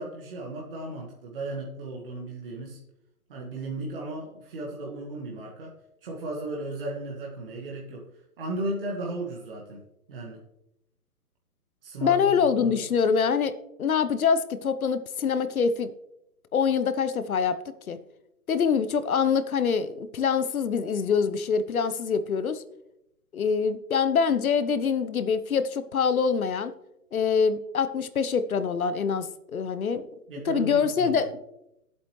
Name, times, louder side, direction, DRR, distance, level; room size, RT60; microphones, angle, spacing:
voice 1, 0.0-2.8 3.3-8.1 8.4-9.8 10.1-10.4 11.8-12.8 30.3-31.2, right 2 dB, 35° right, -2 dB, 1.7 m, -35 dB
voice 2, 12.0-15.9 16.5-17.6 17.9-18.0 18.5-22.6 23.3-26.7 27.1-30.1 30.4-31.3, left 6 dB, 70° left, 13 dB, 0.9 m, -25 dB
13.5 x 8.2 x 3.2 m, 0.85 s
hypercardioid pair, 165°, 45 cm